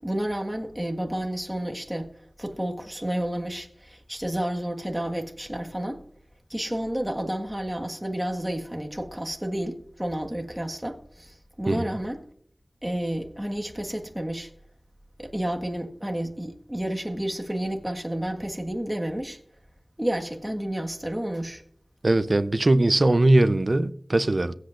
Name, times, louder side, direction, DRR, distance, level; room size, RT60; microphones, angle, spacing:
voice 1, 0.0-2.1 2.4-6.0 6.5-12.2 12.8-14.5 15.2-19.4 20.0-21.6, right 1 dB, 10° right, 1.6 m, -30 dB
voice 2, 22.0-24.5, right 2 dB, 50° right, 0.6 m, -20 dB
23.0 x 8.0 x 2.5 m
wide cardioid pair, 60°, 0 cm